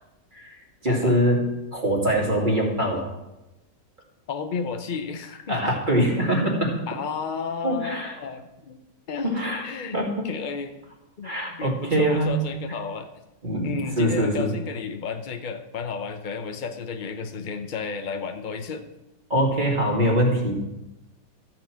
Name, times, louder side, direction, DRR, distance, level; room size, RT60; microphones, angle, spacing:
voice 1, 0.8-3.1 5.5-6.7 7.6-8.2 9.2-9.6 9.9-10.2 11.2-12.4 13.4-14.5 19.3-20.5, equal, 25° right, -2 dB, 2.4 m, -23 dB
voice 2, 4.3-5.7 6.9-8.8 9.1-10.7 11.2-13.1 13.6-18.9, left 5 dB, 85° left, 7 dB, 0.4 m, -32 dB
13.5 x 4.6 x 7.6 m, 0.96 s
omnidirectional pair, 1.9 m